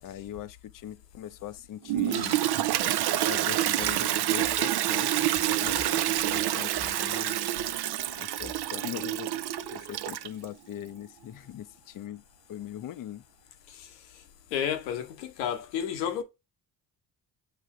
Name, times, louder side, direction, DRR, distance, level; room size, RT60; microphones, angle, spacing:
voice 1, 0.0-2.4 3.3-7.4 8.2-13.2, left 11 dB, 45° left, 0.6 m, -41 dB
Toilet flush, 1.9-10.4, right 13 dB, 55° right, 0.6 m, -28 dB
sound 1, 2.1-10.1, right 4 dB, 35° right, 1.1 m, -48 dB
voice 2, 14.5-16.2, left 9 dB, 90° left, 1.0 m, -31 dB
6.7 x 3.3 x 4.7 m
hypercardioid pair, 50°, 49 cm